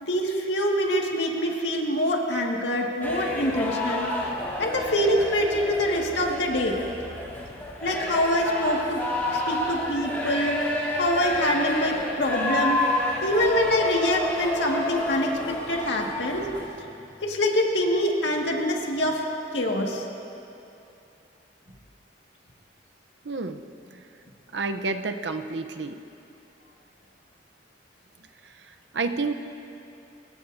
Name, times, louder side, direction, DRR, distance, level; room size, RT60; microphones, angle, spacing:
voice 1, 0.0-4.1 4.6-6.8 7.8-9.0 9.3-10.6 11.0-12.8 13.2-16.5 17.2-19.2 19.5-20.1, equal, 80° left, 0 dB, 1.9 m, -25 dB
sound 1, 3.0-16.6, left 1 dB, 10° left, 3.1 m, -30 dB
voice 2, 23.2-23.6 23.9-24.0 24.5-26.0 28.4-29.3, right 3 dB, 90° right, 7 dB, 0.8 m, -30 dB
23.5 x 20.5 x 2.7 m, 2.8 s
head